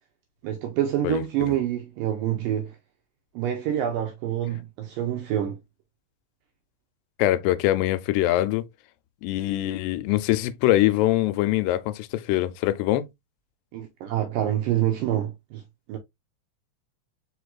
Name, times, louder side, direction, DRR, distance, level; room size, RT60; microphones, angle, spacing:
voice 1, 0.4-2.7 3.4-5.6 13.7-15.6 15.9-16.0, right 11 dB, 85° right, 2.0 m, -26 dB
voice 2, 7.2-8.7 9.2-13.1, left 15 dB, 90° left, 2.6 m, -23 dB
5.1 x 4.6 x 2.3 m
omnidirectional pair, 4.6 m